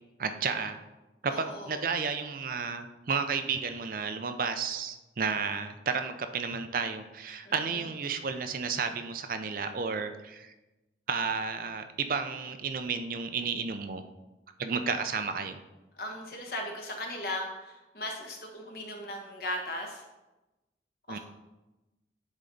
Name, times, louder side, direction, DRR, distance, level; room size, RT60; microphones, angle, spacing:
voice 1, 0.2-0.8 1.2-10.5 11.1-14.0 14.6-15.6 21.1-21.2, right 5 dB, 50° right, 8 dB, 0.5 m, -32 dB
voice 2, 1.3-1.8 7.4-7.5 16.0-20.0 21.1-21.2, left 1 dB, 55° left, 1 dB, 1.3 m, -37 dB
9.8 x 4.1 x 3.9 m, 1.1 s
head